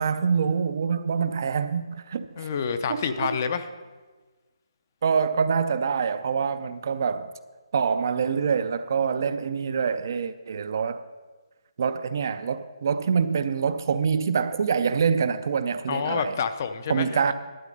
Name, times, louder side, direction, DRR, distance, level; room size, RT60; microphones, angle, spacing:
voice 1, 0.0-2.5 2.9-3.3 5.0-7.3 7.7-11.0 11.8-16.4 16.9-17.3, right 6 dB, 35° right, 0.4 m, -25 dB
voice 2, 2.4-3.7 15.9-17.3, left 6 dB, 30° left, 0.5 m, -28 dB
11.5 x 8.3 x 5.2 m
hypercardioid pair, 170°, 3 cm